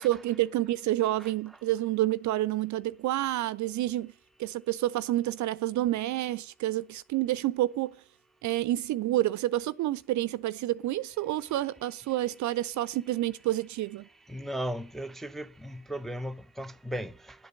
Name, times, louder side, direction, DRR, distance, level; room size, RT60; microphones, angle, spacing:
voice 1, 0.0-4.1 4.4-7.9 8.4-14.1, right 15 dB, 45° right, 0.5 m, -29 dB
voice 2, 14.3-17.1, equal, ahead, 0.5 m, -36 dB
11.0 x 7.9 x 7.7 m
figure-of-eight pair, 40°, 43 cm